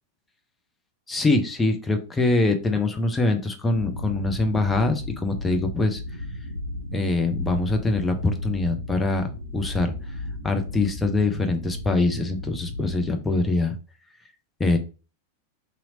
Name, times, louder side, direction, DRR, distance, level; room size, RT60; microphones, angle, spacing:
voice 1, 1.1-6.0 6.9-9.3 9.5-9.9 10.4-13.7 14.6-14.8, left 2 dB, 10° left, 5 dB, 0.6 m, -23 dB
sound 1, 3.8-13.2, left 1 dB, 80° right, 0.7 m, -35 dB
2.9 x 2.8 x 2.7 m, 0.33 s
figure-of-eight pair, 90°, 0 cm